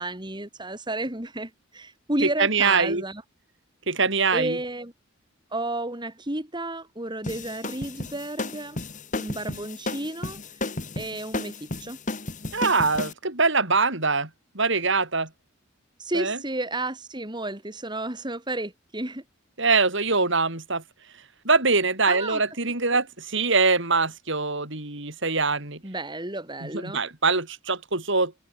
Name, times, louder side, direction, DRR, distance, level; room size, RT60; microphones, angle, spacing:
voice 1, 0.0-3.2 4.3-4.9 5.5-8.8 9.1-12.0 16.0-19.2 22.1-22.4 22.9-23.0 25.8-27.0, right 2 dB, 20° right, 3.1 m, -32 dB
voice 2, 2.2-3.0 3.9-4.6 12.5-14.3 14.6-15.3 16.1-16.4 19.6-20.8 21.5-25.8 26.6-28.5, right 4 dB, 60° right, 5.4 m, -23 dB
sound 1, 7.2-13.1, left 2 dB, 35° left, 2.7 m, -33 dB
head